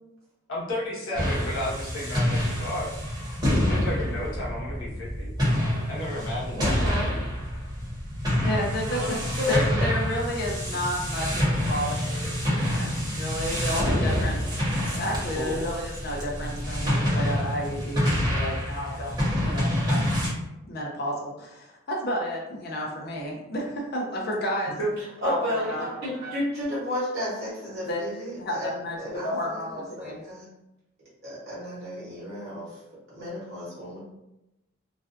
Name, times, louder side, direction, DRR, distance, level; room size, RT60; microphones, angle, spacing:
voice 1, 0.5-2.9 3.6-5.3 5.9-6.7 15.3-15.6 24.8-24.9, equal, 75° left, -6 dB, 0.8 m, -32 dB
sound 1, 1.1-20.3, equal, 20° right, 0.8 m, -27 dB
voice 2, 6.5-7.2 8.8-10.0 25.0-30.5 31.2-32.8 33.1-34.0, left 1 dB, 50° right, -9 dB, 0.9 m, -32 dB
voice 3, 8.4-9.2 9.5-14.4 14.9-20.1 20.6-24.7 25.2-25.9 27.8-28.0 28.4-30.2, equal, 50° left, -2 dB, 0.5 m, -31 dB
2.4 x 2.2 x 2.5 m, 0.92 s
head